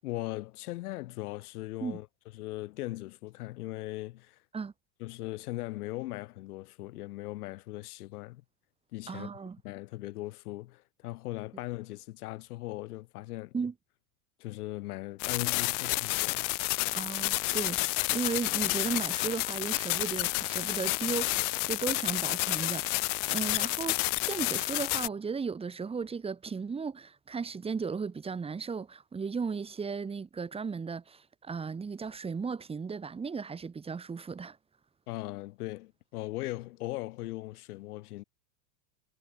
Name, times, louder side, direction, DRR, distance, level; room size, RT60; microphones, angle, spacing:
voice 1, 0.0-2.1 2.3-4.4 5.0-8.4 8.9-9.3 9.6-13.5 14.4-16.5 35.1-38.2, left 18 dB, 70° left, 6.6 m, -39 dB
voice 2, 9.1-9.6 13.5-13.7 16.9-34.6, right 5 dB, 10° right, 3.2 m, -36 dB
sound 1, 15.2-25.1, left 28 dB, 50° left, 0.9 m, -30 dB
supercardioid pair, 155°, 47 cm